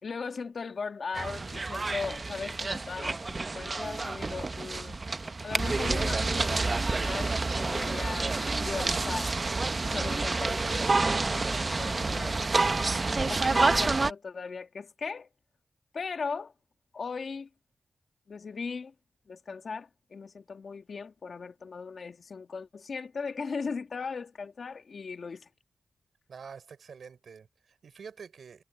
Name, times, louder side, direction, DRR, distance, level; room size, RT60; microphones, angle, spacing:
voice 1, 0.0-5.0 5.4-8.3 8.6-9.3 9.8-12.4 13.2-15.3 15.9-16.5 16.9-17.5 18.3-18.9 19.3-25.5, left 5 dB, 65° left, 2.1 m, -38 dB
sound 1, 1.1-14.1, right 3 dB, 40° right, 1.0 m, -28 dB
voice 2, 26.3-28.6, right 6 dB, 80° right, 4.4 m, -47 dB
cardioid pair, 60°, 0 cm